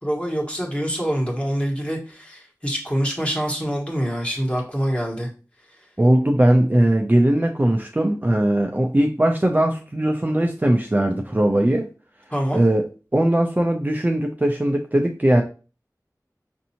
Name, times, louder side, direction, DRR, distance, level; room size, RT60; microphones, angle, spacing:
voice 1, 0.0-5.3 12.3-12.6, equal, 15° left, -1 dB, 1.3 m, -25 dB
voice 2, 6.0-11.9 12.5-12.8 13.1-15.4, right 1 dB, 25° right, 2 dB, 0.5 m, -19 dB
5.2 x 2.6 x 2.8 m, 0.34 s
wide cardioid pair, 40°, 7 cm